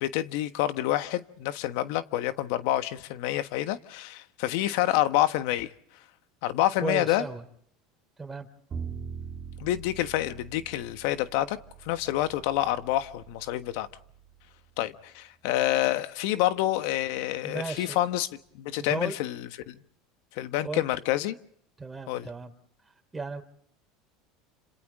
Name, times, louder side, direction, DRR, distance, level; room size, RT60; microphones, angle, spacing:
voice 1, 0.0-5.7 6.4-7.2 9.6-13.9 14.8-18.3 18.5-19.8 20.4-21.4 22.1-22.3, left 14 dB, 70° left, 1.3 m, -28 dB
voice 2, 6.8-7.4 8.2-8.5 17.4-18.0 18.8-19.1 20.6-20.8 21.8-22.5 23.1-23.4, right 3 dB, 15° right, 4.0 m, -35 dB
Bowed string instrument, 8.7-14.9, right 7 dB, 35° right, 3.5 m, -43 dB
30.0 x 27.0 x 3.7 m
supercardioid pair, 95°, 0 cm